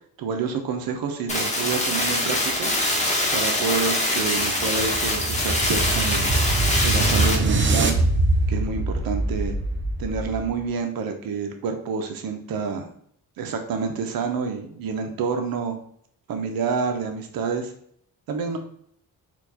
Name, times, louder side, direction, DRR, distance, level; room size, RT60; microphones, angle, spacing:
voice 1, 0.2-2.7 3.3-6.3 6.8-8.0 8.5-9.6 10.0-12.9 13.4-15.8 16.3-17.7 18.3-18.6, right 5 dB, 75° right, 5 dB, 0.6 m, -28 dB
sound 1, 1.3-7.3, left 1 dB, 20° left, 0.9 m, -24 dB
sound 2, 4.2-10.6, right 2 dB, 35° right, 0.5 m, -24 dB
4.3 x 2.3 x 2.7 m, 0.65 s
cardioid pair, 85°, 35 cm